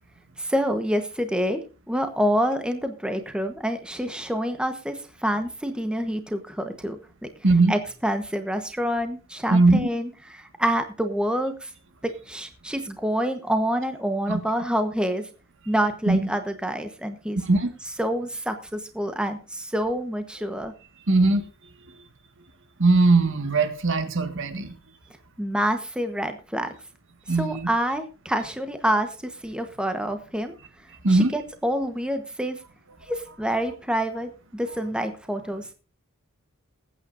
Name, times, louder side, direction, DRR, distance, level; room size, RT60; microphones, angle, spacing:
voice 1, 0.4-1.6 1.9-7.0 7.7-11.7 12.0-15.3 15.7-17.4 18.0-20.7 25.4-26.7 27.4-30.5 31.1-32.6 33.1-35.6, equal, 5° right, 7 dB, 1.1 m, -27 dB
voice 2, 9.5-9.9 14.3-14.4 16.1-16.3 17.4-17.7 21.1-21.4 22.8-24.7 27.3-27.7 31.0-31.3, right 3 dB, 60° right, 8 dB, 1.7 m, -20 dB
21.0 x 8.9 x 2.6 m, 0.34 s
head